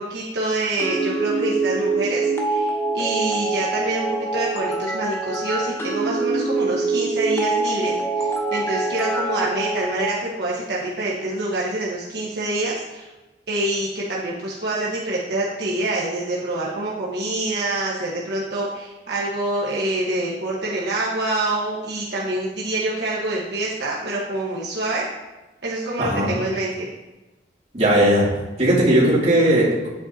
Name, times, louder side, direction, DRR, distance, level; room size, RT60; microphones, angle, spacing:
voice 1, 0.0-13.1 13.5-25.0 25.6-26.9, right 2 dB, 70° right, -6 dB, 1.4 m, -26 dB
sound 1, 0.8-10.2, right 3 dB, 15° left, 1.0 m, -24 dB
voice 2, 26.0-26.3 27.7-28.3 28.6-29.9, right 1 dB, 40° right, -6 dB, 3.0 m, -17 dB
10.0 x 8.9 x 2.9 m, 1.1 s
head